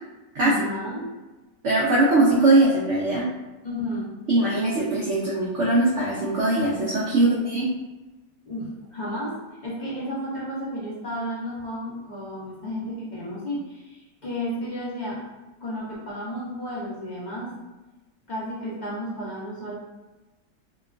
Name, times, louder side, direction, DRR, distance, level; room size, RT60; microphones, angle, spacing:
voice 1, 0.4-1.1 3.6-4.1 7.1-7.6 8.4-15.2 15.6-17.6 18.3-19.7, equal, 55° left, -8 dB, 0.5 m, -32 dB
voice 2, 1.6-3.3 4.3-7.3 7.5-7.7, right 2 dB, 85° right, -6 dB, 0.6 m, -21 dB
2.9 x 2.2 x 2.4 m, 1.1 s
omnidirectional pair, 1.8 m